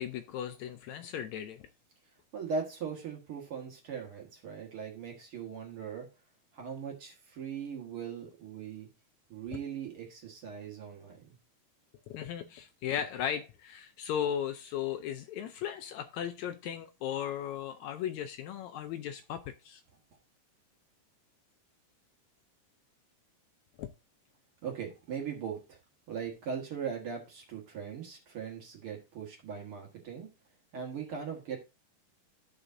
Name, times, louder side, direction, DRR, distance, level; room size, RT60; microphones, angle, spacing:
voice 1, 0.0-1.6 12.1-19.8 23.8-23.9, left 9 dB, 80° left, 1.7 m, -36 dB
voice 2, 2.3-6.1 6.5-8.9 9.3-11.4 24.6-25.8 26.1-30.3 30.7-31.6, right 6 dB, 50° right, 2.2 m, -39 dB
14.0 x 5.0 x 2.6 m
omnidirectional pair, 3.6 m